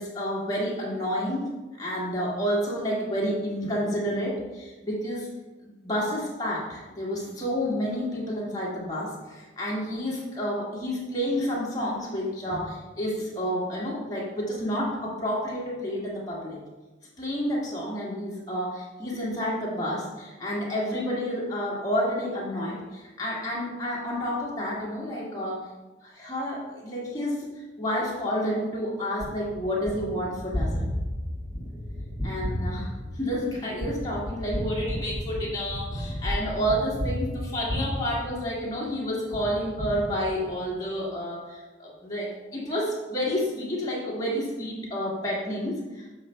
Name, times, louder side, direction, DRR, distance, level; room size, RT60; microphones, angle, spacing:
voice 1, 0.0-1.5 1.8-5.3 5.8-16.6 17.2-25.6 26.0-30.9 32.2-46.2, equal, 20° left, -5 dB, 1.7 m, -30 dB
Gunshot gunfire, 29.2-38.9 39.3-40.7, equal, 20° right, 2.2 m, -33 dB
7.6 x 3.3 x 5.5 m, 1.2 s
head